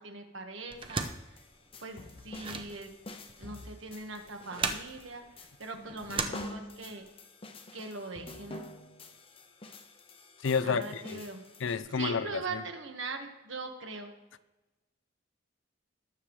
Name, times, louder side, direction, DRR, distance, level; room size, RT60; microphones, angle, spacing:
voice 1, 0.0-1.4 1.8-2.9 3.4-7.1 7.7-8.7 10.6-11.5 11.9-14.1, right 3 dB, 75° right, 4 dB, 1.6 m, -41 dB
sound 1, 0.7-7.0, right 4 dB, 25° right, 0.7 m, -38 dB
sound 2, 0.8-11.8, left 2 dB, 30° left, 0.8 m, -47 dB
voice 2, 10.4-11.2 11.6-12.6, left 5 dB, 70° left, 15 dB, 0.5 m, -30 dB
19.0 x 7.2 x 3.2 m, 1.0 s
head